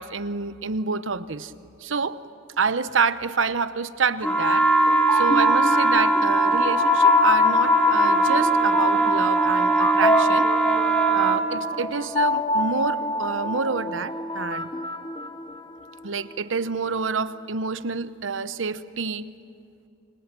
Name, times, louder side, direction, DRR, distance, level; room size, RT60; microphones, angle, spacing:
voice 1, 0.0-1.5 1.8-2.2 2.6-4.7 5.1-10.5 11.1-14.7 16.0-19.3, right 5 dB, 80° right, 13 dB, 0.9 m, -27 dB
sound 1, 4.2-11.4, right 2 dB, 5° left, 1.9 m, -20 dB
sound 2, 4.9-16.0, left 3 dB, 25° left, 0.8 m, -25 dB
28.5 x 24.5 x 7.6 m, 2.5 s
head